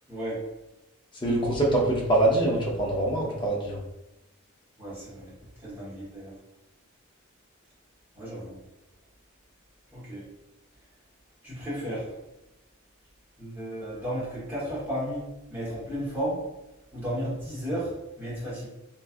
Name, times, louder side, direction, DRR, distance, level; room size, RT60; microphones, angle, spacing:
voice 1, 0.1-0.5 4.8-5.3 5.6-6.3 8.1-8.6 9.9-10.3 11.4-12.1 13.4-16.5 16.9-18.7, equal, 10° right, -9 dB, 1.2 m, -33 dB
voice 2, 1.2-3.8, right 1 dB, 20° left, -3 dB, 0.6 m, -24 dB
3.1 x 2.3 x 2.5 m, 0.95 s
head